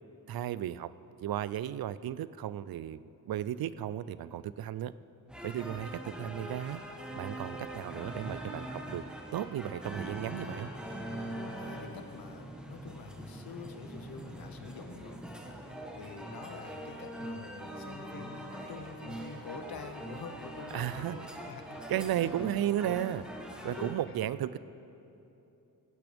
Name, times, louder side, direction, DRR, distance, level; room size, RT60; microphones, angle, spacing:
voice 1, 0.3-0.9 1.2-4.9 5.4-6.8 7.2-9.0 9.3-10.7 20.7-21.2 21.9-23.2 23.6-24.6, right 11 dB, 85° right, 16 dB, 0.5 m, -34 dB
sound 1, 5.3-23.9, right 1 dB, 5° right, 1.2 m, -42 dB
voice 2, 11.5-15.5 15.9-21.8 23.6-23.9, left 5 dB, 80° left, 7 dB, 1.1 m, -47 dB
16.5 x 16.5 x 3.5 m, 2.9 s
wide cardioid pair, 160°, 35 cm